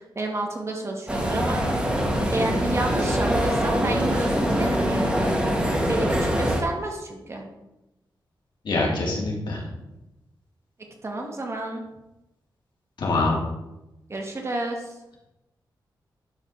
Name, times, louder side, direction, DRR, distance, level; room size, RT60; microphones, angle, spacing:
voice 1, 0.0-1.6 2.3-5.3 5.9-7.4 11.0-11.8 14.1-14.9, right 2 dB, 35° right, 1 dB, 1.8 m, -30 dB
sound 1, 1.1-6.6, equal, 15° right, 1.6 m, -23 dB
voice 2, 8.6-9.6 13.0-13.4, left 2 dB, 75° left, -3 dB, 2.6 m, -24 dB
11.5 x 4.0 x 5.7 m, 0.95 s
wide cardioid pair, 100°, 8 cm